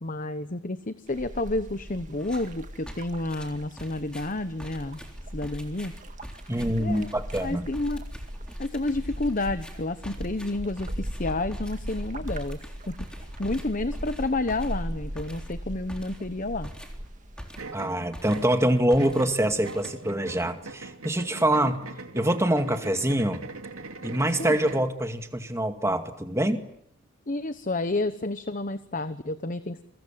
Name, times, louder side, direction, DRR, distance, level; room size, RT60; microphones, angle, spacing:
voice 1, 0.0-5.0 5.3-5.9 6.8-7.1 7.4-8.0 8.6-12.6 12.9-13.0 13.4-16.7 24.4-24.6 27.3-29.8, left 2 dB, 40° left, 11 dB, 1.0 m, -30 dB
sound 1, 1.1-17.6, equal, 35° right, 2.1 m, -38 dB
sound 2, 2.2-2.5 2.9-17.8 18.1-18.6 18.9-20.3, equal, 5° left, 3.7 m, -45 dB
voice 2, 6.5-7.7 17.7-21.8 22.1-23.4 24.0-26.6, right 1 dB, 15° right, 6 dB, 2.2 m, -25 dB
sound 3, 17.6-24.9, right 3 dB, 90° right, 2.5 m, -41 dB
29.0 x 23.5 x 7.5 m, 0.73 s
head